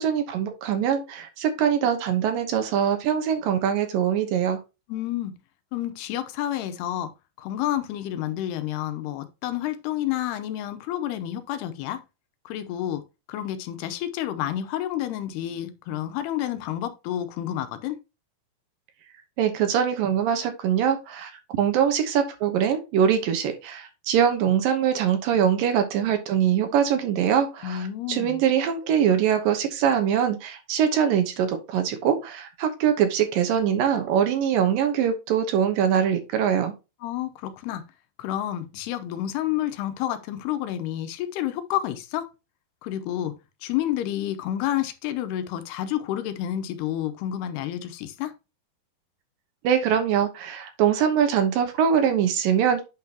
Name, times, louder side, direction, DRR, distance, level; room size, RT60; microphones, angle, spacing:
voice 1, 0.0-4.6 19.4-21.3 21.6-36.7 49.6-52.8, right 8 dB, 70° right, 2.5 m, -23 dB
voice 2, 4.9-5.3 5.7-7.1 7.4-12.0 12.5-13.0 13.3-18.0 27.6-28.4 37.0-37.8 38.2-42.3 42.8-43.3 43.6-48.3, left 12 dB, 90° left, 2.9 m, -29 dB
8.6 x 5.9 x 2.8 m
omnidirectional pair, 4.5 m